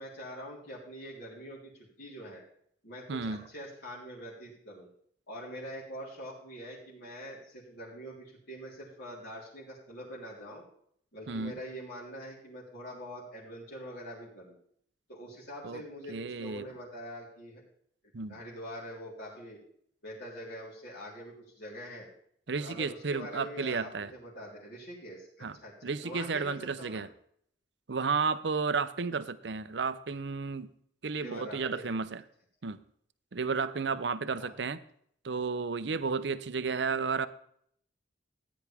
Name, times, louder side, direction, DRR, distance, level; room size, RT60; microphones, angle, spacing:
voice 1, 0.0-2.4 2.8-4.9 5.3-10.6 11.1-14.6 15.1-17.6 18.3-19.6 20.0-22.1 22.6-27.0 31.1-31.9 34.3-34.5, equal, 60° left, -7 dB, 3.7 m, -44 dB
voice 2, 3.1-3.4 11.3-11.6 15.6-15.8 16.1-16.7 18.1-18.4 22.5-24.1 25.4-25.6 25.8-27.1 27.9-30.7 31.0-32.2 32.6-32.8 33.3-34.8 35.2-37.3, right 5 dB, 70° right, 14 dB, 0.6 m, -32 dB
15.0 x 9.6 x 3.5 m, 0.66 s
head